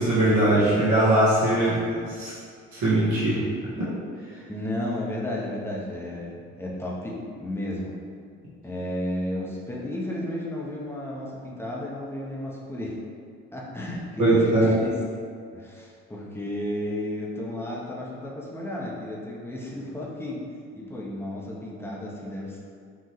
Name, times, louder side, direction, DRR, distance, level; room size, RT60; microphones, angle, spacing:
voice 1, 0.0-2.3 2.7-3.4 14.2-14.7, right 1 dB, 60° right, -8 dB, 1.4 m, -21 dB
voice 2, 4.5-7.9 8.6-13.0 13.5-14.9 15.5-20.4 20.8-22.6, left 1 dB, 5° left, -4 dB, 1.0 m, -33 dB
4.7 x 2.7 x 3.3 m, 2.2 s
hypercardioid pair, 50°, 33 cm